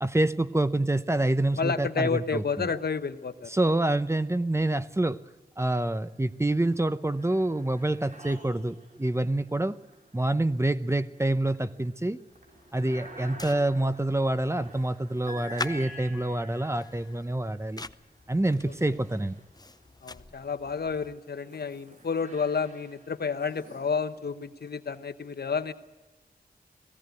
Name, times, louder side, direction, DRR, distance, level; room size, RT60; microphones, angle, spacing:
voice 1, 0.0-2.7 3.5-5.2 5.6-9.8 10.1-12.2 12.7-17.8 18.3-19.4, right 1 dB, 15° right, 13 dB, 0.8 m, -27 dB
voice 2, 1.6-3.5 18.7-18.8 20.0-25.7, left 5 dB, 70° left, 11 dB, 1.0 m, -30 dB
sound 1, 5.7-6.3 6.7-19.9 20.5-25.0, right 1 dB, 50° right, 4.4 m, -50 dB
sound 2, 12.3-21.2, left 3 dB, 25° left, 0.6 m, -45 dB
18.5 x 16.0 x 9.2 m, 1.2 s
wide cardioid pair, 75°, 17 cm